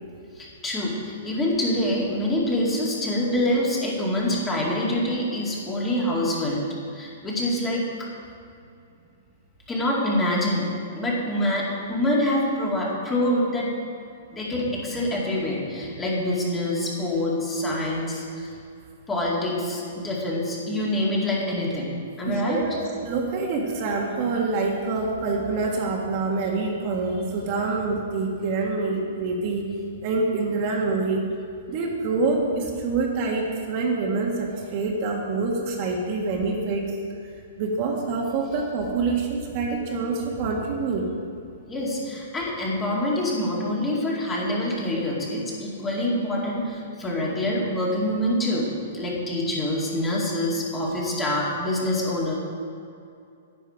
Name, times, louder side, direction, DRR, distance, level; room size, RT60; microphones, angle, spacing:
voice 1, 0.4-6.6 6.9-7.9 9.7-10.7 10.9-13.7 14.3-18.5 19.1-21.9 22.2-22.6 41.7-48.7 48.9-52.3, left 1 dB, 15° left, -4 dB, 2.2 m, -25 dB
voice 2, 22.3-22.8 23.0-29.6 30.0-31.2 31.7-36.9 37.6-41.1, right 3 dB, 40° right, 0 dB, 1.6 m, -26 dB
10.0 x 9.7 x 5.0 m, 2.5 s
hypercardioid pair, 150°, 0 cm